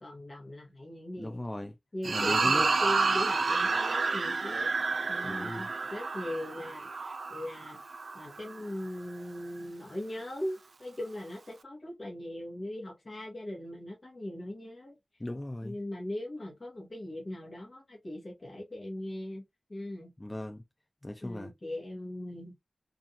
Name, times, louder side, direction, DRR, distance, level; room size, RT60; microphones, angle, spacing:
voice 1, 0.0-1.4 1.9-4.7 5.1-7.8 8.1-15.0 15.6-19.4 19.7-20.1 21.2-22.5, left 1 dB, 40° left, 1.0 m, -39 dB
voice 2, 1.2-1.7 2.1-2.7 5.2-5.7 15.2-15.8 20.2-20.6 21.0-21.5, left 1 dB, 20° left, 0.3 m, -37 dB
sound 1, 2.0-8.6, right 4 dB, 75° right, 0.3 m, -30 dB
2.5 x 2.3 x 2.7 m
wide cardioid pair, 70°, 0 cm